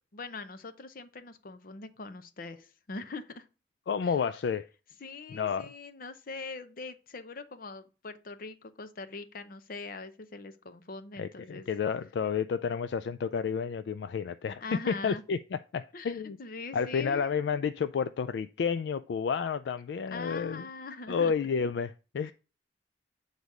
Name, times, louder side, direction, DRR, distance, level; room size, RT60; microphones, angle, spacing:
voice 1, 0.1-3.5 4.0-4.1 5.0-11.7 14.6-15.2 15.9-17.3 20.1-21.3, left 3 dB, 55° left, 0.7 m, -42 dB
voice 2, 3.9-4.7 5.3-5.7 11.2-16.4 16.7-20.6 21.1-22.3, left 6 dB, 70° left, 0.3 m, -31 dB
8.1 x 4.0 x 4.8 m
head